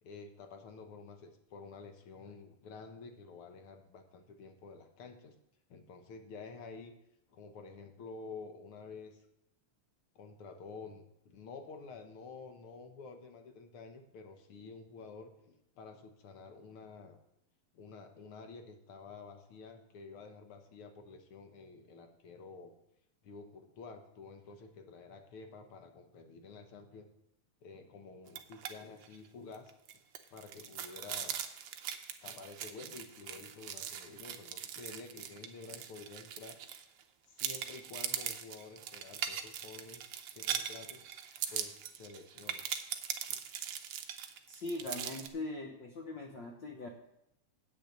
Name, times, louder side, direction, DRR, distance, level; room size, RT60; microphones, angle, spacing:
voice 1, 0.0-5.3 5.7-6.9 7.3-9.2 10.1-17.2 17.7-22.7 23.2-27.1 27.6-29.7 30.3-31.4 32.2-36.6 37.3-40.0 40.3-41.0 41.5-42.6 43.3-43.4, left 4 dB, 60° left, 6 dB, 1.5 m, -50 dB
sound 1, 28.3-28.7 29.0-29.2 29.5-37.0 37.4-45.3, right 9 dB, 75° right, 1.3 m, -40 dB
voice 2, 44.5-46.9, left 2 dB, 85° left, 1 dB, 1.0 m, -41 dB
8.1 x 6.6 x 8.3 m, 0.80 s
omnidirectional pair, 3.5 m